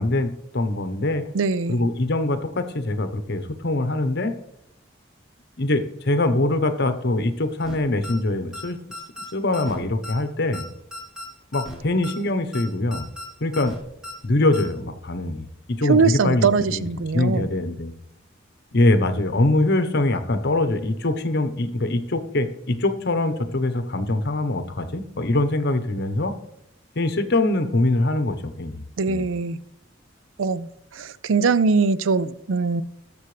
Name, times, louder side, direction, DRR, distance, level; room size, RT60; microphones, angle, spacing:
voice 1, 0.0-1.2 1.7-4.3 5.6-8.8 9.3-10.6 11.5-13.1 13.4-13.7 14.2-16.8 17.1-17.9 18.7-26.4 27.0-28.8 29.1-29.2, left 2 dB, 55° left, 9 dB, 1.0 m, -23 dB
voice 2, 1.3-1.8 15.8-17.5 29.0-29.6 30.4-32.8, right 4 dB, 80° right, 16 dB, 0.5 m, -22 dB
sound 1, 7.6-7.8 8.0-8.1 8.5-8.6 8.9-9.3 9.5-9.8 10.0-10.1 10.5-10.6 10.9-11.3 11.5-11.8 12.0-12.1 12.5-12.6 12.9-13.3 13.5-13.8 14.0-14.1 14.5-14.6, left 1 dB, 5° right, 3.0 m, -36 dB
20.0 x 7.0 x 3.3 m, 0.80 s
head